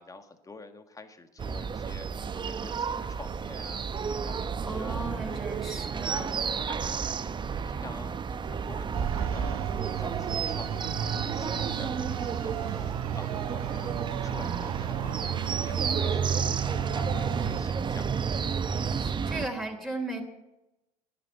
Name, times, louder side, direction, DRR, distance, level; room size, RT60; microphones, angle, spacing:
voice 1, 0.0-5.6 6.3-18.3, left 3 dB, 20° left, 8 dB, 1.7 m, -48 dB
sound 1, 1.4-19.5, right 6 dB, 25° right, 0.8 m, -31 dB
voice 2, 4.7-6.5 18.9-20.2, right 2 dB, ahead, 1 dB, 3.3 m, -36 dB
sound 2, 8.9-17.6, right 14 dB, 80° right, 0.5 m, -37 dB
12.0 x 10.5 x 8.8 m, 0.96 s
hypercardioid pair, 70°, 18 cm